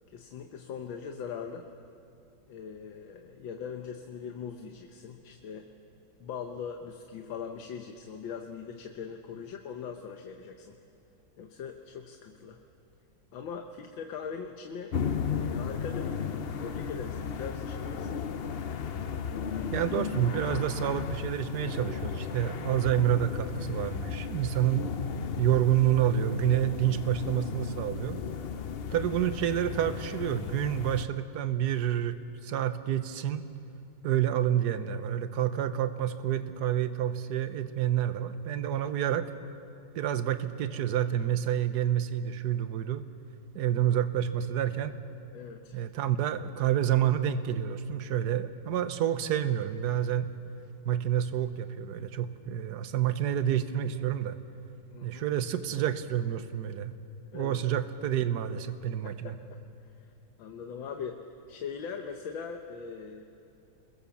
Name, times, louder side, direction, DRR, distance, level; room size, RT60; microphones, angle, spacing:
voice 1, 0.1-1.7 2.5-5.7 6.2-10.8 11.4-12.6 13.3-14.9 15.2-18.2 45.3-45.8 54.9-55.3 57.3-57.6 59.0-59.4 60.0-60.1 60.4-61.2 61.5-63.2, left 6 dB, 90° left, 4 dB, 1.8 m, -41 dB
sound 1, 14.9-31.1, left 6 dB, 75° left, 0.5 m, -35 dB
voice 2, 19.7-24.8 25.4-28.2 28.9-33.4 34.0-39.3 39.9-43.0 43.5-44.9 45.7-50.3 50.8-54.4 55.0-56.9 57.3-59.3, right 10 dB, 65° right, 11 dB, 1.4 m, -28 dB
27.5 x 21.5 x 7.2 m, 2.7 s
omnidirectional pair, 2.0 m